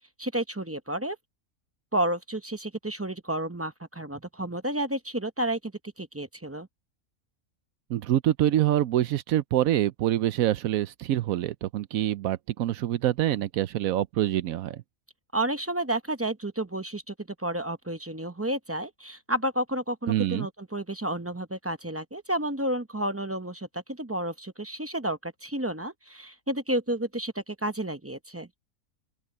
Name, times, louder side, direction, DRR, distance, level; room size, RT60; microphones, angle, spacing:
voice 1, 0.2-1.2 1.9-6.7 15.3-17.1 17.4-28.5, right 1 dB, 15° right, 0.5 m, -31 dB
voice 2, 7.9-14.8 20.1-20.5, right 12 dB, 80° right, 1.0 m, -25 dB
open air
omnidirectional pair, 1.5 m